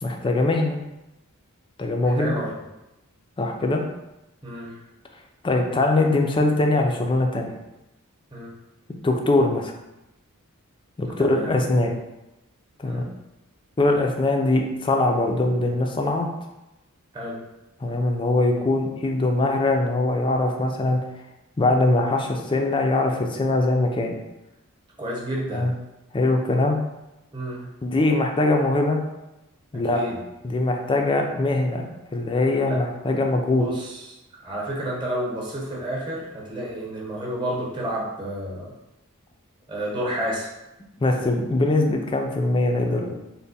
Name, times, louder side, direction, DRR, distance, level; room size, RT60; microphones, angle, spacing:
voice 1, 0.0-0.8 1.8-2.4 3.4-3.8 5.4-7.5 8.9-9.7 11.0-12.0 12.8-13.0 13.8-16.3 17.8-21.0 21.6-24.2 25.5-25.7 26.1-26.8 27.8-29.0 29.7-30.0 30.4-31.8 32.1-33.7 41.0-43.1, left 2 dB, 20° left, 2 dB, 0.4 m, -22 dB
voice 2, 2.0-2.5 4.4-4.7 8.3-8.5 11.2-11.5 12.8-13.1 17.1-17.4 25.0-25.7 27.3-27.7 29.9-30.2 32.7-32.8 33.4-34.0 34.4-38.7 39.7-40.5, right 1 dB, 20° right, -4 dB, 0.9 m, -30 dB
3.4 x 2.1 x 4.0 m, 0.96 s
head